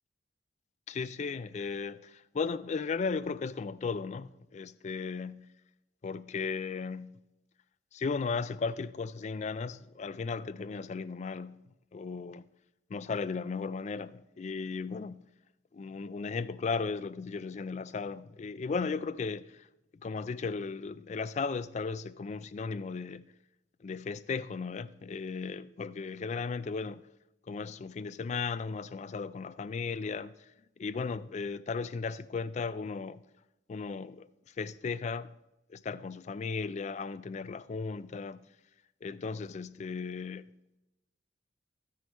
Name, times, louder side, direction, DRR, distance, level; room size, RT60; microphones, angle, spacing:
voice 1, 0.9-5.4 6.0-7.1 7.9-11.6 11.9-12.4 12.9-15.2 15.7-19.7 20.0-23.3 23.8-27.0 27.5-30.3 30.8-33.2 33.7-34.3 34.6-35.3 35.7-38.4 39.0-40.4, left 4 dB, 35° left, 0.3 m, -36 dB
15.0 x 6.3 x 4.2 m
head